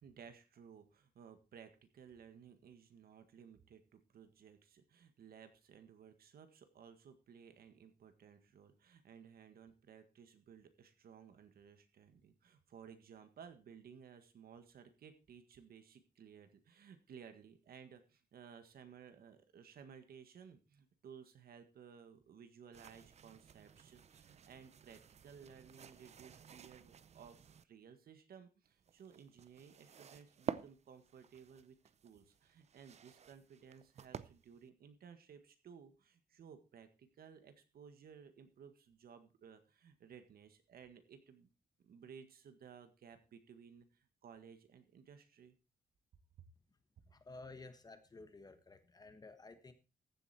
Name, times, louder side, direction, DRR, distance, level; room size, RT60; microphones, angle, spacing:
voice 1, 0.0-31.8 32.0-41.5 41.8-45.5, right 7 dB, 75° right, 9 dB, 1.8 m, -58 dB
sound 1, 22.7-27.6 28.7-34.7, right 7 dB, 45° right, 0.6 m, -51 dB
voice 2, 47.1-49.7, left 3 dB, 25° left, 9 dB, 1.3 m, -54 dB
14.5 x 8.0 x 4.3 m, 0.31 s
wide cardioid pair, 155°, 16 cm